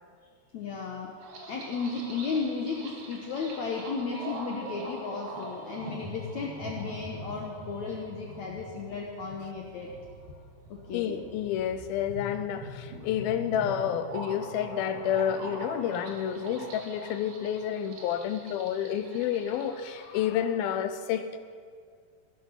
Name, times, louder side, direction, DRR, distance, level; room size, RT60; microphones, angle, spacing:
voice 1, 0.5-1.1 1.5-9.9 10.7-11.2, left 4 dB, 65° left, -1 dB, 2.0 m, -34 dB
sound 1, 1.2-20.3, right 1 dB, 60° right, 3.3 m, -43 dB
voice 2, 10.9-21.4, left 9 dB, 80° left, 10 dB, 2.4 m, -30 dB
18.0 x 11.5 x 5.7 m, 2.1 s
omnidirectional pair, 4.5 m